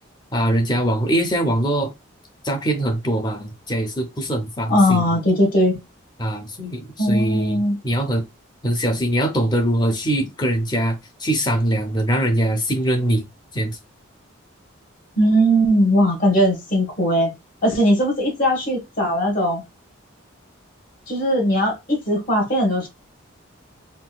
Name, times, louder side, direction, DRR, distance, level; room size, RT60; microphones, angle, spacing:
voice 1, 0.3-1.9 2.4-5.0 6.2-8.2 8.6-13.3 13.5-13.8, right 1 dB, 20° left, 0.6 m, -22 dB
voice 2, 4.7-5.8 7.0-7.8 15.2-17.3 17.6-19.6 21.1-22.9, equal, 45° left, 1.3 m, -19 dB
3.8 x 2.4 x 2.2 m
head